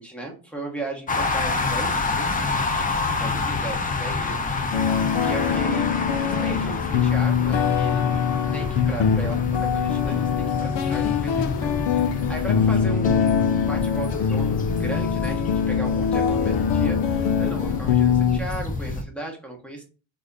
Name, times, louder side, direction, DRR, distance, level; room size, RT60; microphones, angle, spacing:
voice 1, 0.0-2.5 3.1-4.4 5.0-5.9 6.2-8.0 8.5-19.8, right 2 dB, 5° left, 0 dB, 1.1 m, -36 dB
sound 1, 1.1-19.0, left 3 dB, 20° left, 0.4 m, -28 dB
sound 2, 4.7-18.4, left 7 dB, 60° left, 0.7 m, -23 dB
3.5 x 3.4 x 4.0 m, 0.35 s
cardioid pair, 135°, 49 cm